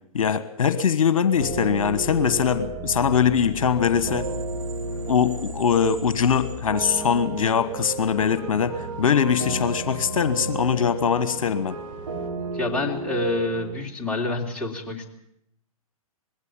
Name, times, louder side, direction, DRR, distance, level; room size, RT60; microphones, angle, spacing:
voice 1, 0.1-4.3 5.1-11.8, left 7 dB, 65° left, 12 dB, 1.4 m, -22 dB
sound 1, 1.3-13.7, right 3 dB, 75° right, 6.9 m, -34 dB
sound 2, 3.8-12.3, right 3 dB, 35° right, 2.2 m, -41 dB
voice 2, 12.5-15.1, left 2 dB, 5° left, -3 dB, 3.4 m, -27 dB
20.5 x 16.5 x 8.8 m, 0.76 s
figure-of-eight pair, 125°, 19 cm